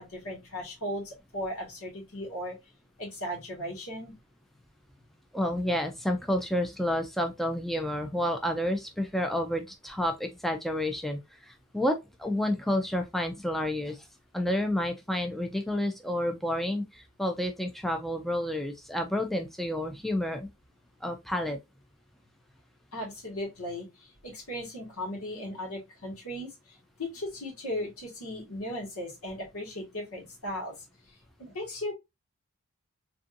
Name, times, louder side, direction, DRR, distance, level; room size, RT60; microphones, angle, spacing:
voice 1, 0.0-2.5 3.0-4.1 22.9-30.7 31.4-31.9, left 1 dB, 80° left, 1.6 m, -37 dB
voice 2, 5.3-14.0 14.3-20.5 21.0-21.6, left 1 dB, ahead, 0.3 m, -30 dB
3.4 x 2.6 x 2.5 m
head